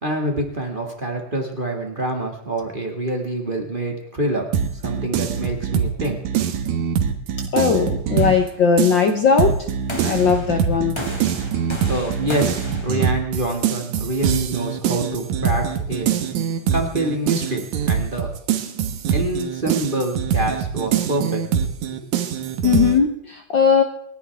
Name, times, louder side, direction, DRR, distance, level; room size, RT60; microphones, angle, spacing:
voice 1, 0.0-4.5 4.7-6.2 11.9-12.6 12.8-16.1 16.7-18.3 19.1-21.4, right 1 dB, 20° right, 2 dB, 1.5 m, -26 dB
sound 1, 4.5-8.5 8.8-23.0, right 8 dB, 75° right, 2.5 m, -23 dB
voice 2, 7.5-9.5 10.0-10.9 22.6-23.8, left 6 dB, 70° left, 5 dB, 1.1 m, -18 dB
sound 2, 8.2-8.7 9.9-10.7 11.0-13.0, left 1 dB, 10° left, 1.4 m, -33 dB
28.0 x 11.0 x 3.5 m, 0.71 s
omnidirectional pair, 3.6 m